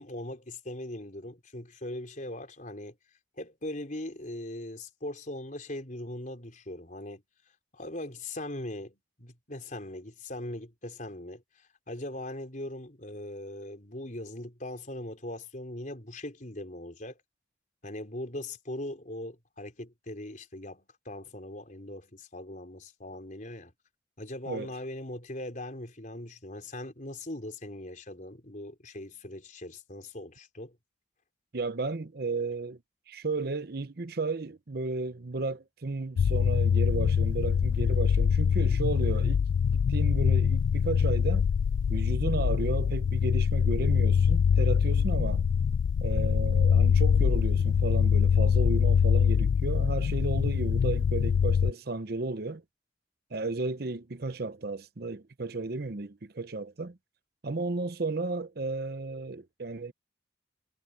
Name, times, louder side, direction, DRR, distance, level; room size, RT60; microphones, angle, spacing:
voice 1, 0.0-3.0 3.4-7.2 7.7-11.4 11.9-17.2 17.8-23.7 24.2-30.8, left 1 dB, 45° left, 4.5 m, -40 dB
voice 2, 31.5-32.8 33.1-39.4 39.7-41.5 41.9-45.4 46.0-52.6 53.3-57.0 57.4-59.9, right 3 dB, 55° right, 0.8 m, -33 dB
sound 1, 36.2-51.7, left 7 dB, 85° left, 0.3 m, -24 dB
head